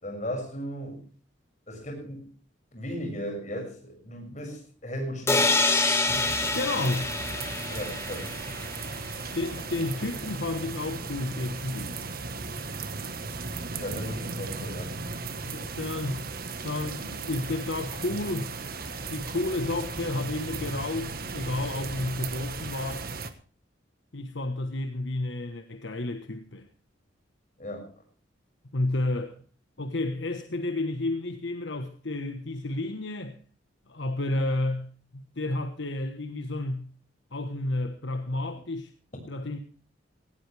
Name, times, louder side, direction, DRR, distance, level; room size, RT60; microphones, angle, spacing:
voice 1, 0.0-1.0 1.7-2.3 2.7-5.6 7.7-8.3 13.7-14.9 27.6-27.9, equal, 40° left, 6.5 m, -36 dB
sound 1, 5.3-9.1, left 3 dB, 15° left, 1.6 m, -27 dB
sound 2, 6.1-23.3, right 4 dB, 50° right, 1.5 m, -36 dB
voice 2, 6.5-7.1 9.3-12.0 15.4-16.3 16.6-18.5 19.1-23.1 24.1-26.7 28.7-29.4 29.8-33.4 33.9-36.9 37.3-38.9 39.3-39.6, left 2 dB, 70° left, 1.3 m, -31 dB
18.0 x 16.5 x 3.4 m
head